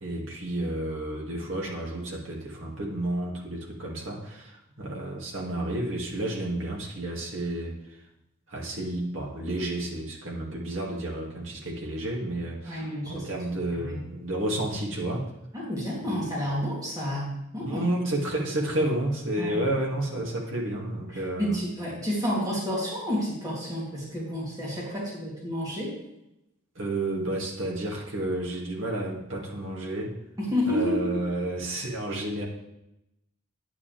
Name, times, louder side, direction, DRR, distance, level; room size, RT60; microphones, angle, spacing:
voice 1, 0.0-7.8 8.5-15.3 16.0-16.3 17.6-21.6 26.8-30.2 30.7-32.4, right 1 dB, 70° right, -2 dB, 2.3 m, -31 dB
voice 2, 12.7-13.3 13.8-14.0 15.5-17.8 19.4-19.5 21.4-25.9 30.4-31.3, equal, 20° right, -6 dB, 3.0 m, -30 dB
9.7 x 8.7 x 3.4 m, 0.87 s
head